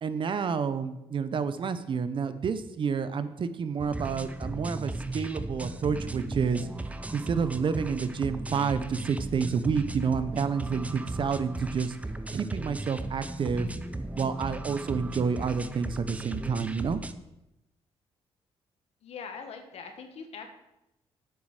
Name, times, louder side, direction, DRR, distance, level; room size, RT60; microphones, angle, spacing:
voice 1, 0.0-6.7 7.1-12.0 12.3-13.7 14.2-17.0, right 6 dB, 50° right, 12 dB, 0.7 m, -29 dB
sound 1, 3.8-17.1, right 2 dB, 15° right, 0.6 m, -36 dB
voice 2, 19.0-20.5, left 5 dB, 70° left, 6 dB, 1.5 m, -42 dB
8.6 x 6.1 x 6.5 m, 0.90 s
cardioid pair, 95°, 11 cm